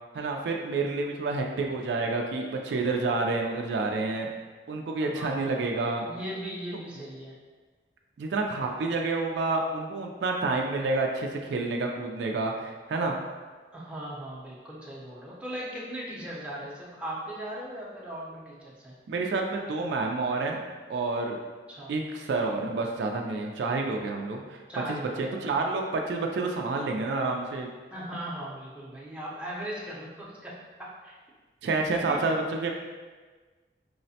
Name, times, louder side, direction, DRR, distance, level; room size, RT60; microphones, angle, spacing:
voice 1, 0.1-4.3 4.7-6.0 8.2-13.1 19.1-20.6 20.9-21.4 21.9-24.6 24.9-27.7 31.6-32.7, right 3 dB, 70° right, 2 dB, 0.3 m, -29 dB
voice 2, 5.0-7.3 13.7-18.9 21.7-22.0 24.7-25.6 27.9-31.2 32.1-32.2, right 1 dB, 5° right, -6 dB, 0.6 m, -38 dB
4.7 x 2.1 x 2.7 m, 1.4 s
head